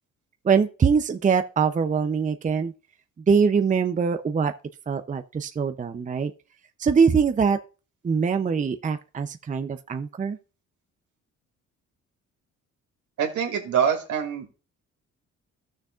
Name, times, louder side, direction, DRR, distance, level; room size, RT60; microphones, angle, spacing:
voice 1, 0.4-2.7 3.3-4.5 4.9-6.3 6.8-7.6 8.0-10.4, right 6 dB, 25° right, 0.6 m, -23 dB
voice 2, 13.2-14.5, right 7 dB, 80° right, 2.3 m, -24 dB
14.0 x 6.5 x 2.4 m
cardioid pair, 90°, 30 cm